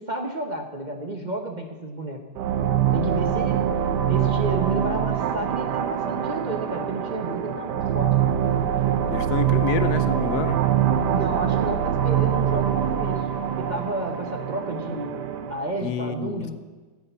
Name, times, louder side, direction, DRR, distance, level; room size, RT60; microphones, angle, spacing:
voice 1, 0.0-2.2 2.9-3.6 4.0-8.3 11.1-13.3 13.6-15.1 15.5-16.5, right 2 dB, 35° right, 2 dB, 0.9 m, -31 dB
sound 1, 2.3-15.7, right 9 dB, 80° right, 1.3 m, -24 dB
voice 2, 9.1-10.6 15.8-16.5, left 8 dB, 70° left, 10 dB, 1.1 m, -28 dB
14.0 x 8.5 x 5.6 m, 1.3 s
omnidirectional pair, 1.8 m